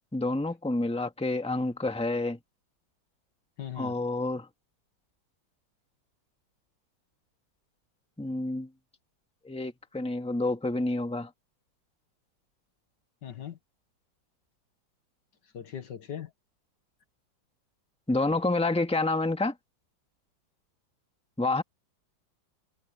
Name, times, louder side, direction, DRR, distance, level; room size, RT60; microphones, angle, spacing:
voice 1, 0.1-2.4 3.8-4.5 8.2-8.7 9.4-11.3 18.1-19.5 21.4-21.6, left 2 dB, 5° left, 1.7 m, -28 dB
voice 2, 3.6-3.9 13.2-13.6 15.5-16.3, left 9 dB, 65° left, 2.0 m, -39 dB
omnidirectional pair, 2.1 m